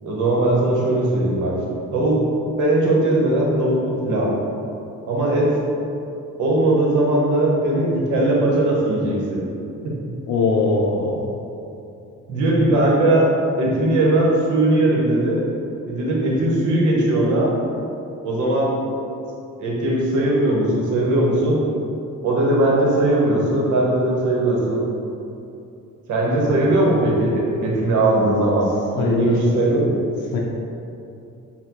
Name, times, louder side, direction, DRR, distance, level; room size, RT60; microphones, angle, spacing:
voice 1, 0.0-1.6 1.9-2.2 2.6-4.3 5.1-5.6 6.4-9.4 9.8-9.9 12.3-13.3 13.6-15.4 15.9-17.5 18.2-18.7 19.6-21.6 22.2-24.8 26.1-28.7 29.0-29.9, right 1 dB, 80° right, -3 dB, 0.9 m, -19 dB
voice 2, 10.3-11.3 26.4-26.5 29.0-29.4 30.3-30.4, left 3 dB, 80° left, -2 dB, 0.5 m, -21 dB
5.6 x 2.2 x 2.9 m, 2.7 s
cardioid pair, 90°, 30 cm